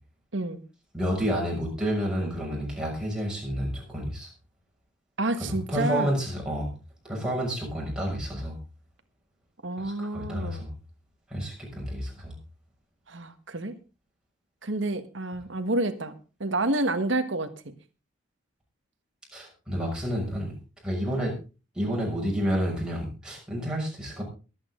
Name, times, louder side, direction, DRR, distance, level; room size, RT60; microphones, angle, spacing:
voice 1, 0.9-4.3 5.7-6.7 7.0-8.6 9.8-10.7 11.3-12.3 19.3-20.5 20.8-21.3 21.7-24.2, equal, 5° right, -3 dB, 6.3 m, -30 dB
voice 2, 5.2-6.2 9.6-10.6 13.1-13.7 14.6-16.1 16.4-17.7, right 2 dB, 70° right, 8 dB, 1.4 m, -29 dB
22.5 x 8.7 x 3.8 m, 0.33 s
head